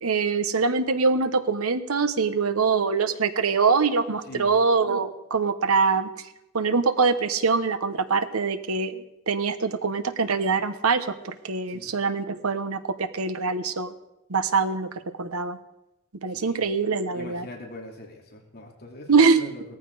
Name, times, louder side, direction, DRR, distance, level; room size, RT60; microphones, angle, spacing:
voice 1, 0.0-6.1 6.5-13.9 14.3-14.9 15.2-15.6 16.2-17.5 19.1-19.4, right 4 dB, 85° right, 11 dB, 1.0 m, -24 dB
voice 2, 16.3-19.6, left 1 dB, 50° left, 0 dB, 3.0 m, -43 dB
18.0 x 14.5 x 4.8 m, 0.90 s
head